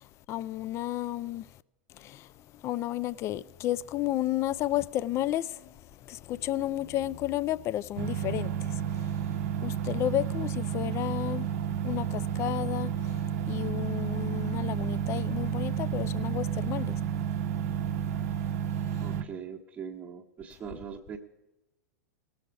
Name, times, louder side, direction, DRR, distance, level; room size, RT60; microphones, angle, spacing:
voice 1, 0.0-1.6 1.9-17.0 17.3-17.7 18.8-19.2, left 13 dB, 30° left, 0.3 m, -33 dB
sound 1, 8.0-19.2, right 9 dB, 55° right, 0.7 m, -31 dB
voice 2, 19.0-21.2, right 7 dB, 20° right, 1.1 m, -41 dB
18.0 x 7.0 x 4.6 m
hypercardioid pair, 100°, 9 cm